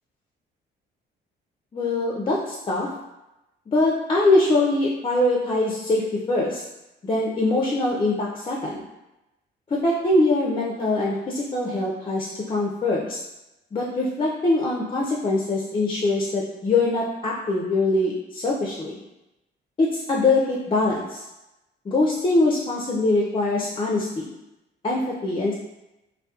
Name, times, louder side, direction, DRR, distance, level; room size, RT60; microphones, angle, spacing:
voice 1, 1.7-2.9 3.7-6.6 7.0-8.8 9.7-13.2 13.7-19.0 19.8-21.2 21.9-24.3 24.8-25.5, left 2 dB, 25° left, -3 dB, 0.4 m, -23 dB
2.6 x 2.1 x 2.3 m, 0.97 s
cardioid pair, 90°, 20 cm